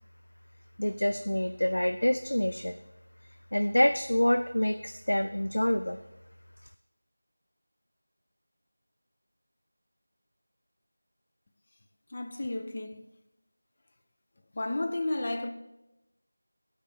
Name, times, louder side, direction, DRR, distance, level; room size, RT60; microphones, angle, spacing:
voice 1, 0.8-2.8 3.5-6.0, left 1 dB, 85° left, 0.4 m, -27 dB
voice 2, 12.1-13.1 14.5-15.5, left 2 dB, 35° left, 0.7 m, -32 dB
9.5 x 5.1 x 6.0 m
figure-of-eight pair, 175°, 0 cm